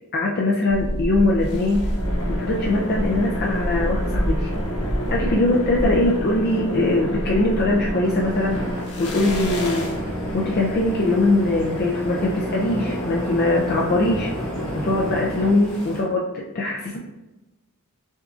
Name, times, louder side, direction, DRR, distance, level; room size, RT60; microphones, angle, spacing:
voice 1, 0.1-1.9 2.3-4.5 5.1-8.6 9.0-9.9 10.3-14.3 14.7-17.0, left 2 dB, 45° left, -2 dB, 0.4 m, -21 dB
sound 1, 0.7-15.5, equal, 50° right, 1.0 m, -30 dB
sound 2, 1.4-16.0, equal, 85° left, 1.0 m, -30 dB
sound 3, 8.0-16.0, equal, 5° left, 1.0 m, -39 dB
6.2 x 2.5 x 2.4 m, 1.0 s
head